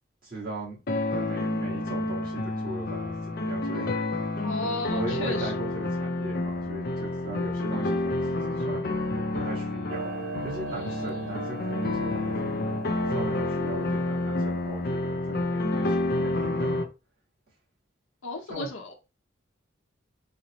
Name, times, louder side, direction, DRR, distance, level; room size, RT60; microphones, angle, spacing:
voice 1, 0.2-0.8 1.1-3.9 4.9-12.4 13.1-16.9 18.5-18.7, right 2 dB, 45° right, 1.4 m, -38 dB
sound 1, 0.9-16.8, left 2 dB, 50° left, 0.4 m, -29 dB
voice 2, 4.4-5.5 10.7-11.3 18.2-18.9, left 2 dB, 80° left, 0.8 m, -35 dB
Clock, 9.9-14.9, right 6 dB, 85° right, 0.3 m, -40 dB
4.1 x 2.0 x 2.8 m
head